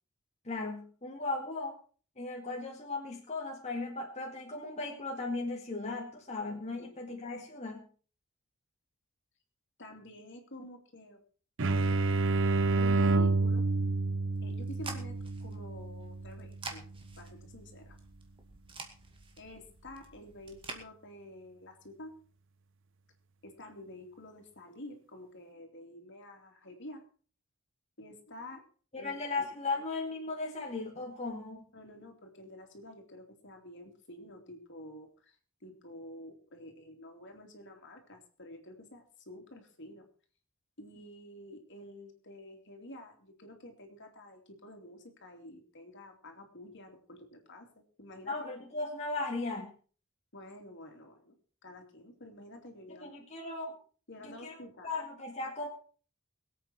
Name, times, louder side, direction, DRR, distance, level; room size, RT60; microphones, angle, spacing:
voice 1, 0.4-1.8 2.2-7.8 28.9-31.7 48.3-49.7 52.9-53.8 54.2-54.6 54.8-55.7, left 3 dB, 30° left, -1 dB, 2.1 m, -37 dB
voice 2, 9.8-11.2 12.7-13.7 14.4-16.8 17.2-18.0 19.4-22.2 23.4-27.0 28.0-28.6 29.0-29.7 31.7-35.4 35.6-40.1 40.8-48.5 50.3-51.3 51.6-53.2 54.1-54.9, left 1 dB, 55° left, 4 dB, 3.0 m, -49 dB
sound 1, 11.6-17.1, right 3 dB, 60° right, 0.9 m, -29 dB
sound 2, 14.3-20.8, right 3 dB, 25° right, 2.2 m, -48 dB
22.5 x 8.5 x 4.5 m, 0.41 s
head